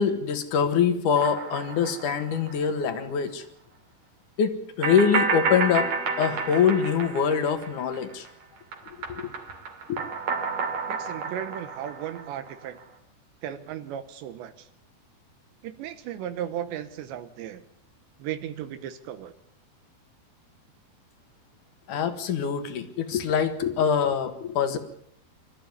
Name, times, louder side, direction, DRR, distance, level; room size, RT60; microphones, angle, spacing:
voice 1, 0.0-3.4 4.4-5.9 6.2-8.3 9.1-9.3 9.9-10.0 21.9-24.8, left 7 dB, 55° left, 9 dB, 2.6 m, -24 dB
sound 1, 1.1-2.8 3.1-3.2 4.8-8.3 8.6-12.8, right 4 dB, 50° right, 4.1 m, -31 dB
voice 2, 10.9-12.8 13.4-14.7 15.6-17.6 18.2-19.3, right 10 dB, 80° right, 10 dB, 3.4 m, -35 dB
26.5 x 14.0 x 9.6 m, 0.72 s
omnidirectional pair, 5.1 m